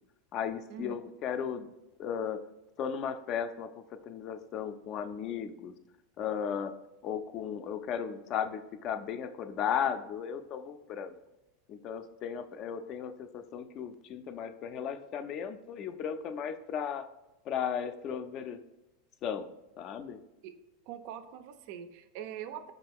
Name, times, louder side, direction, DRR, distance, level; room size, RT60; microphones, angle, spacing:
voice 1, 0.3-1.7 2.0-2.4 2.8-5.7 6.2-6.7 7.0-11.1 11.7-17.0 17.5-18.6 19.2-19.5 19.8-20.2, left 8 dB, 45° left, 9 dB, 0.3 m, -35 dB
voice 2, 20.9-22.7, right 9 dB, 60° right, 9 dB, 0.3 m, -43 dB
5.1 x 2.3 x 3.5 m, 0.94 s
hypercardioid pair, 90°, 0 cm